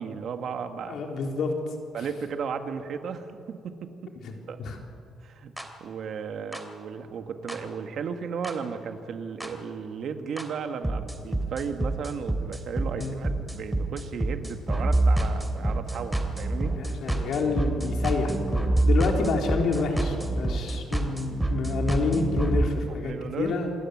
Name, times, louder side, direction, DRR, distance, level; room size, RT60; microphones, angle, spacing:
voice 1, 0.0-1.0 1.9-4.1 4.5-4.6 5.2-5.5 5.8-16.8 23.0-23.6, right 6 dB, 65° right, 7 dB, 1.8 m, -35 dB
voice 2, 0.9-1.5 2.0-2.1 4.6-4.8 13.0-13.2 16.7-23.1 23.4-23.7, left 4 dB, 70° left, 2 dB, 3.8 m, -28 dB
sound 1, 5.6-5.7 6.5-6.6 7.5-7.6 8.4-8.5 9.4-9.5 10.4-10.5 10.8-22.6, right 2 dB, 10° right, 3.1 m, -27 dB
27.0 x 13.5 x 9.9 m, 2.6 s
cardioid pair, 90°, 0 cm